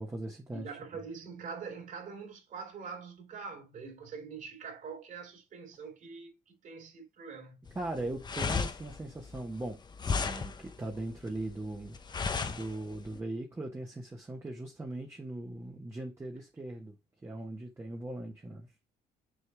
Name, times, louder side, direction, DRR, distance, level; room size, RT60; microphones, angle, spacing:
voice 1, 0.0-0.7 7.7-9.8 10.2-12.0 12.4-17.0 17.2-18.7, right 2 dB, 15° right, 1.4 m, -39 dB
voice 2, 0.5-7.6, right 5 dB, 50° right, 3.5 m, -44 dB
sound 1, 7.7-13.2, left 5 dB, 25° left, 0.8 m, -35 dB
6.6 x 4.4 x 3.4 m
cardioid pair, 110°, 17 cm